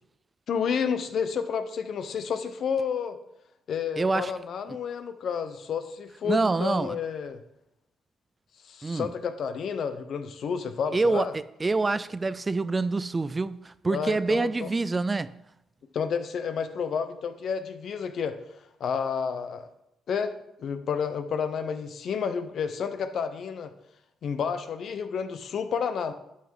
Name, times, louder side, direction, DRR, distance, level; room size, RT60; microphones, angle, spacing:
voice 1, 0.5-3.2 3.7-7.4 8.6-11.3 13.9-14.7 15.9-18.4 18.8-19.7 20.1-23.7 24.2-26.1, left 6 dB, 60° left, 0.9 m, -30 dB
voice 2, 4.0-4.3 6.3-7.0 8.8-9.1 10.9-15.3, right 3 dB, 25° right, 0.3 m, -26 dB
11.0 x 5.8 x 4.7 m
cardioid pair, 90°, 0 cm